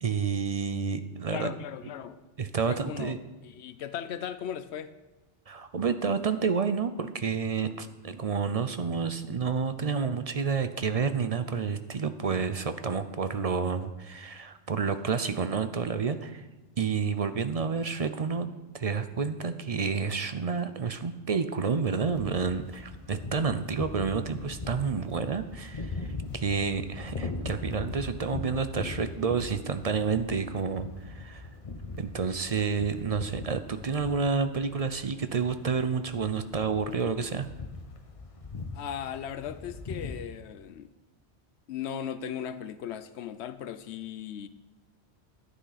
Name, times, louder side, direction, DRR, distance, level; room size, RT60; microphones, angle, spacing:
voice 1, 0.0-1.5 2.4-3.2 5.5-16.4 16.8-18.5 18.7-26.0 26.3-31.5 32.0-37.5, right 5 dB, 45° right, 0.5 m, -29 dB
voice 2, 1.3-2.2 2.7-4.9 38.7-40.9 41.7-44.5, left 9 dB, 80° left, 0.9 m, -37 dB
sound 1, 22.1-40.2, left 3 dB, 35° left, 0.9 m, -40 dB
11.5 x 9.7 x 4.1 m
omnidirectional pair, 1.1 m